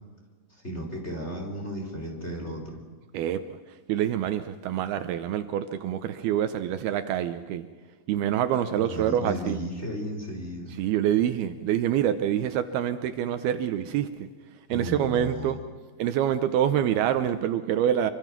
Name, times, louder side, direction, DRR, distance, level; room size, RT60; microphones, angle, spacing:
voice 1, 0.6-2.8 8.8-10.7 14.7-15.6, equal, 15° left, 1 dB, 3.7 m, -34 dB
voice 2, 3.9-7.7 8.1-9.6 10.8-14.3 14.7-15.6 16.0-18.1, right 10 dB, 75° right, 10 dB, 2.8 m, -26 dB
26.5 x 24.0 x 6.1 m, 1.4 s
omnidirectional pair, 4.7 m